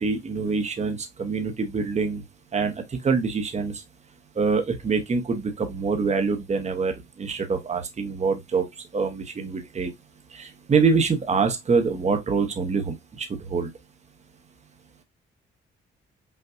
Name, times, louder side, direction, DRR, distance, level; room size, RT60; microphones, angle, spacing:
voice 1, 0.0-2.2 2.5-3.8 4.3-8.7 8.9-9.9 10.3-13.7, right 5 dB, 35° right, 1.1 m, -25 dB
5.6 x 2.5 x 2.5 m
cardioid pair, 90°, 20 cm